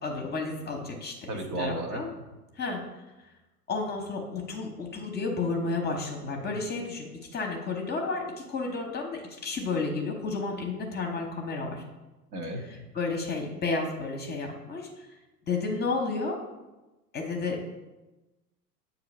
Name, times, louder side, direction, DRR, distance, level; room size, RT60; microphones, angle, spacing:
voice 1, 0.0-1.3 1.5-2.1 2.6-2.8 3.7-11.8 12.4-15.1 15.5-16.4 17.1-17.6, left 3 dB, 20° left, 2 dB, 0.8 m, -32 dB
voice 2, 1.3-2.0 12.3-12.8, right 2 dB, 65° right, 2 dB, 1.2 m, -33 dB
7.9 x 2.8 x 5.3 m, 1.1 s
figure-of-eight pair, 85°, 50 cm